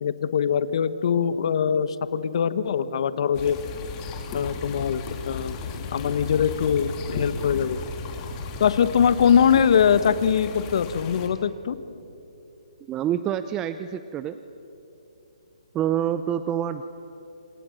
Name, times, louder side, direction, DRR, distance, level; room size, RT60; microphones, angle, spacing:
voice 1, 0.0-3.6 4.3-7.8 8.6-11.8, left 7 dB, 55° left, 14 dB, 1.3 m, -22 dB
sound 1, 3.3-11.3, left 4 dB, 25° left, 2.9 m, -35 dB
voice 2, 12.9-14.4 15.7-16.8, right 10 dB, 15° right, 11 dB, 0.6 m, -27 dB
28.0 x 28.0 x 6.5 m, 3.0 s
hypercardioid pair, 145°, 4 cm